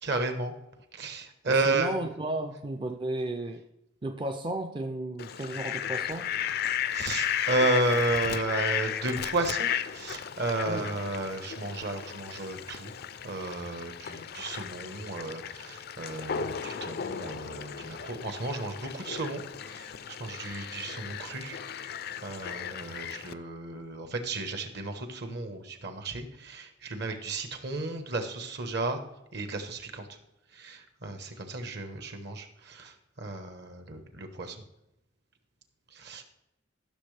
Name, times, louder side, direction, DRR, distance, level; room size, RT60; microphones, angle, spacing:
voice 1, 0.0-0.5 0.9-1.9 6.9-12.9 13.2-19.9 20.2-21.6 22.2-29.0 29.3-30.1 30.5-34.6 35.9-36.2, right 2 dB, 60° right, 7 dB, 1.2 m, -33 dB
voice 2, 1.5-3.6 4.0-6.3 10.7-10.9, right 2 dB, 25° right, 6 dB, 0.4 m, -34 dB
Fowl, 5.2-23.3, left 9 dB, 55° left, 0.4 m, -35 dB
14.0 x 6.4 x 3.3 m, 0.87 s
head